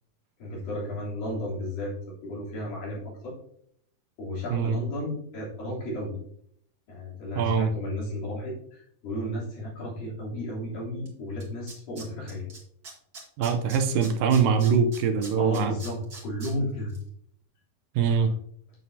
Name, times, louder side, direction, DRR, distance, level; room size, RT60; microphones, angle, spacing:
voice 1, 0.4-2.0 2.2-3.3 4.2-6.2 6.9-12.5 15.4-16.9, left 1 dB, 75° left, -6 dB, 4.9 m, -33 dB
voice 2, 4.5-4.8 7.4-7.7 13.4-15.7 18.0-18.3, right 6 dB, 80° right, 7 dB, 2.3 m, -23 dB
Tools, 11.1-11.2 11.4-12.6 12.8-16.5 16.9-17.0, right 3 dB, 35° right, 1.8 m, -42 dB
9.5 x 7.3 x 2.7 m, 0.68 s
omnidirectional pair, 4.1 m